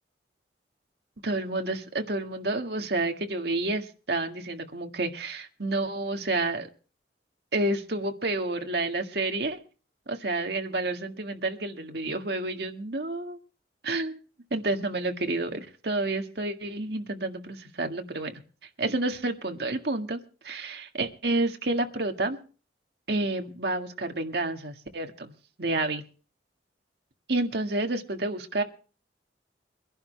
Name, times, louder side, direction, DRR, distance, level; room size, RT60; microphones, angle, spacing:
voice 1, 1.2-6.7 7.5-9.6 10.1-13.4 13.8-14.2 14.5-18.3 18.8-20.2 20.4-22.4 23.1-25.3 25.6-26.0 27.3-28.6, right 2 dB, 65° right, 5 dB, 1.8 m, -29 dB
24.0 x 11.5 x 3.3 m, 0.37 s
head